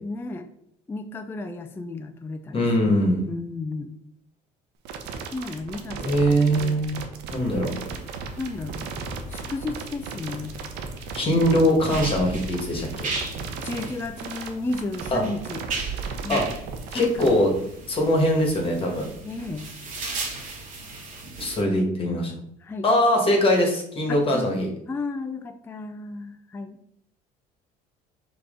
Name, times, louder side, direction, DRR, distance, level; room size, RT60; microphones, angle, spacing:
voice 1, 0.0-0.5 0.9-2.6 3.3-4.0 5.3-6.8 7.3-7.4 8.4-8.8 9.3-10.6 13.6-15.6 16.2-16.4 16.9-17.2 19.2-19.7 22.6-22.9 24.1-24.6 24.9-26.8, left 3 dB, 10° left, 7 dB, 0.3 m, -33 dB
voice 2, 2.5-3.2 6.0-7.7 11.1-13.1 15.1-15.2 16.3-16.4 16.9-17.5 17.9-19.1 21.4-22.3 22.8-24.7, equal, 30° left, 1 dB, 1.4 m, -22 dB
sound 1, 4.8-17.3, right 6 dB, 70° right, 0.7 m, -36 dB
sound 2, 7.3-21.6, right 3 dB, 45° right, 1.7 m, -37 dB
4.6 x 3.0 x 3.7 m, 0.73 s
supercardioid pair, 105°, 18 cm